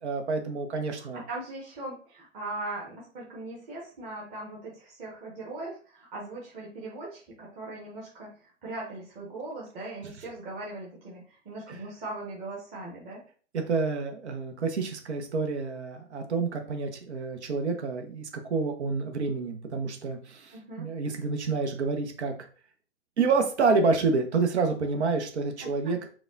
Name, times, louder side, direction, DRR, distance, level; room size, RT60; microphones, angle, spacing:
voice 1, 0.0-1.2 11.7-11.8 13.7-22.3 23.2-26.0, right 4 dB, 65° right, 4 dB, 1.1 m, -28 dB
voice 2, 1.0-13.2 20.5-20.9 25.6-25.7, right 2 dB, 20° right, -5 dB, 1.0 m, -39 dB
5.0 x 2.3 x 3.9 m, 0.40 s
hypercardioid pair, 140°, 37 cm